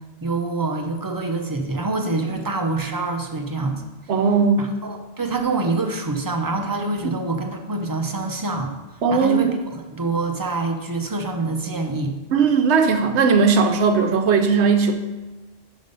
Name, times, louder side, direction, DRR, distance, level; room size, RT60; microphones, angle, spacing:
voice 1, 0.2-3.8 4.6-8.7 9.1-12.1, right 3 dB, 30° right, 3 dB, 0.4 m, -26 dB
voice 2, 4.1-4.7 9.0-9.6 12.3-14.9, right 5 dB, 70° right, 6 dB, 1.0 m, -18 dB
5.4 x 5.3 x 5.2 m, 1.2 s
omnidirectional pair, 1.2 m